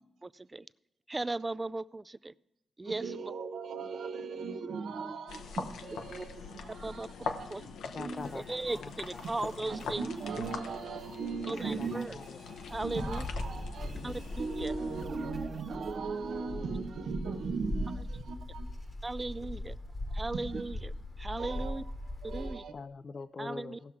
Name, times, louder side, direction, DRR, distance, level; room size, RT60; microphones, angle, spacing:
voice 1, 0.2-0.7 1.1-2.3 2.8-3.3 6.1-6.3 6.8-7.1 7.5-7.6 8.3-10.1 11.5-12.1 12.7-13.3 14.0-14.7 19.0-19.8 20.1-21.8 22.3-22.6 23.4-23.8, right 2 dB, 25° right, 18 dB, 0.3 m, -37 dB
voice 2, 2.8-8.3 9.7-12.2 12.8-18.7 20.3-20.6 21.4-21.8 22.2-22.7, right 5 dB, 75° right, 8 dB, 0.9 m, -38 dB
sound 1, 5.3-15.1, left 5 dB, 90° left, 0.8 m, -43 dB
voice 3, 7.9-9.2 9.6-10.1 11.6-12.8 13.5-14.1 22.7-24.0, left 4 dB, 50° left, 16 dB, 0.4 m, -45 dB
sound 2, 8.1-16.4, right 3 dB, 55° right, 1.4 m, -56 dB
Wind, 12.6-22.6, left 1 dB, 25° left, 1.1 m, -40 dB
16.5 x 6.0 x 4.7 m, 1.0 s
cardioid pair, 70°, 0 cm